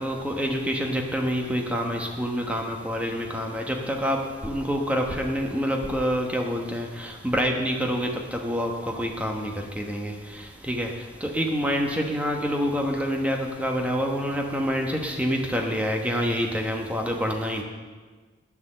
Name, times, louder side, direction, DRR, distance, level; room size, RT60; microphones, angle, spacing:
voice 1, 0.0-17.6, equal, 5° right, 1 dB, 1.1 m, -27 dB
9.5 x 6.3 x 7.6 m, 1.4 s
head